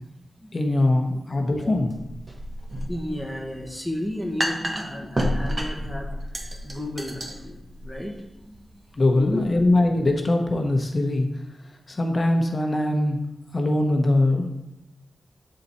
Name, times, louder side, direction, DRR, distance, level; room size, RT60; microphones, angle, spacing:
voice 1, 0.5-1.9 9.0-11.3 11.9-13.2 13.5-14.5, left 2 dB, 45° left, 2 dB, 0.8 m, -21 dB
sound 1, 1.9-9.7, equal, 40° right, 1.1 m, -31 dB
voice 2, 2.9-6.1 6.6-8.7 9.0-9.5, left 1 dB, 10° right, 0 dB, 1.3 m, -33 dB
7.7 x 4.1 x 4.2 m, 0.91 s
cardioid pair, 60°, 0 cm